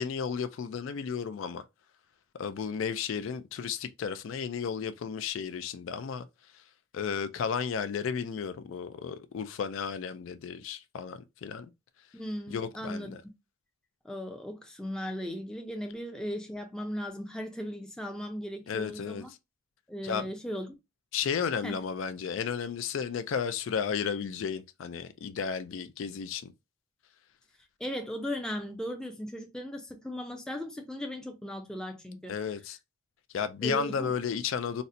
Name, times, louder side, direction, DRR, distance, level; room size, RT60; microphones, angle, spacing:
voice 1, 0.0-1.6 2.3-6.3 6.9-11.7 12.5-13.2 18.7-19.2 20.0-20.3 21.1-26.5 32.3-32.8 33.3-34.8, left 6 dB, 65° left, 0.3 m, -33 dB
voice 2, 12.1-13.2 14.0-19.3 19.9-20.8 21.6-21.7 27.8-32.3 33.6-34.1, equal, 5° left, 0.4 m, -37 dB
4.1 x 2.1 x 2.5 m
head